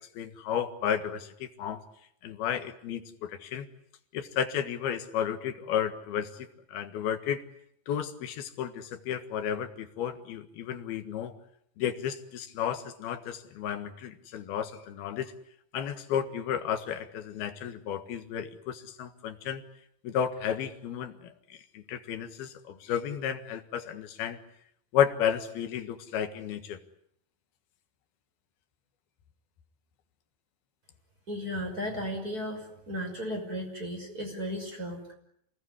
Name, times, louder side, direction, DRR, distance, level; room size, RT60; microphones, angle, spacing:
voice 1, 0.1-1.8 2.2-3.7 4.1-7.4 7.9-11.3 11.8-15.3 15.7-19.6 20.0-24.4 24.9-26.8, left 9 dB, 65° left, 8 dB, 3.2 m, -32 dB
voice 2, 31.3-35.1, equal, 20° right, 3 dB, 6.0 m, -35 dB
28.5 x 18.5 x 9.8 m, 0.72 s
omnidirectional pair, 5.3 m